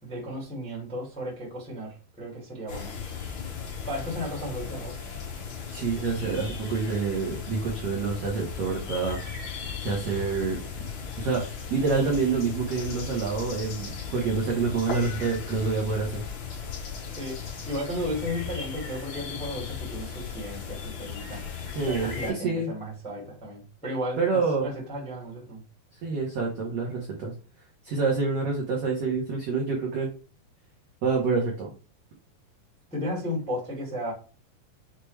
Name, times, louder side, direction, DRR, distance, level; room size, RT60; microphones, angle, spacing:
voice 1, 0.0-2.9 3.8-5.0 17.2-17.4 17.6-21.4 21.8-25.6 32.9-34.1, equal, 5° left, -4 dB, 0.6 m, -34 dB
sound 1, 2.7-22.3, left 6 dB, 60° left, 2.5 m, -37 dB
voice 2, 5.7-9.2 9.8-10.6 11.2-11.4 11.7-16.2 21.7-22.7 24.2-24.7 26.0-27.3 27.8-30.1 31.0-31.7, right 4 dB, 80° right, -2 dB, 1.4 m, -27 dB
6.5 x 2.3 x 3.2 m, 0.35 s
omnidirectional pair, 4.2 m